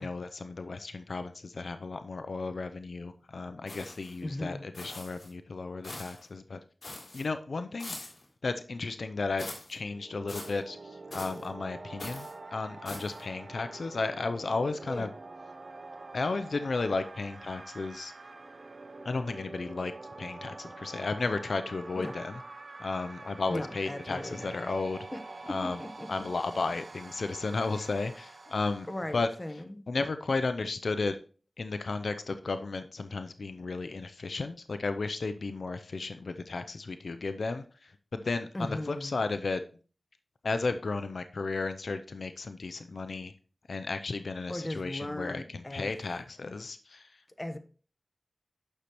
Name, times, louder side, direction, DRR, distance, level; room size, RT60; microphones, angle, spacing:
voice 1, 0.0-6.6 7.1-8.0 8.4-15.1 16.1-18.1 19.0-19.9 20.2-22.4 22.8-25.0 25.5-25.8 26.1-28.9 29.1-29.3 29.9-31.2 31.6-39.6 40.4-43.3 43.7-47.1, left 3 dB, 80° left, 9 dB, 0.5 m, -34 dB
sound 1, 3.7-4.2 4.7-5.3 5.8-6.3 6.8-7.3 7.8-8.2 9.4-9.8 10.3-10.6 11.1-11.5 12.0-12.3 12.8-13.2, left 2 dB, 65° left, 3.1 m, -43 dB
voice 2, 4.2-4.6 14.9-15.1 21.9-22.2 23.5-24.6 25.1-25.2 25.5-26.1 28.9-29.9 38.5-39.2 44.5-45.9 47.4-47.6, left 1 dB, 25° left, 8 dB, 1.1 m, -37 dB
sound 2, 9.8-29.6, right 3 dB, 65° right, 0.8 m, -46 dB
9.8 x 6.5 x 3.0 m, 0.38 s
cardioid pair, 40°, 0 cm